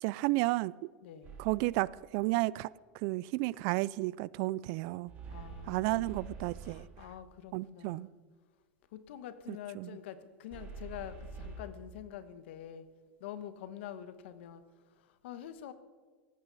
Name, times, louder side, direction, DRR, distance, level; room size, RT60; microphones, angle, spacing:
voice 1, 0.0-0.7 1.4-2.7 3.0-5.1 5.7-6.9 7.5-8.1 9.8-9.9, right 21 dB, 55° right, 0.4 m, -32 dB
voice 2, 1.0-1.4 5.3-6.2 6.6-8.2 8.9-12.9 13.2-14.6 14.9-15.7, left 10 dB, 70° left, 1.3 m, -46 dB
sound 1, 1.2-1.8 5.1-7.1 10.5-11.6, right 4 dB, 30° right, 5.5 m, -46 dB
17.5 x 15.0 x 4.1 m
supercardioid pair, 120°, 6 cm